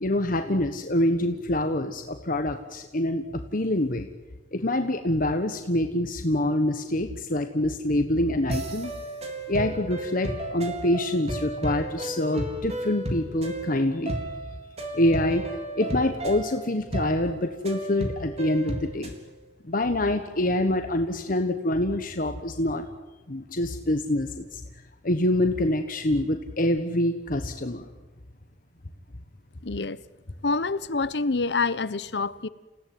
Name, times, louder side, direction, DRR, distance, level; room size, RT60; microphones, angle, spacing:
voice 1, 0.0-4.1 4.5-8.9 9.5-14.2 14.9-15.4 15.8-19.1 19.6-22.8 23.3-24.6 25.0-27.9, left 1 dB, 50° left, 1.4 m, -26 dB
sound 1, 8.5-19.2, right 1 dB, 40° right, 4.0 m, -34 dB
voice 2, 29.6-30.0 30.4-32.5, left 3 dB, 70° left, 0.9 m, -27 dB
29.0 x 17.0 x 9.5 m
head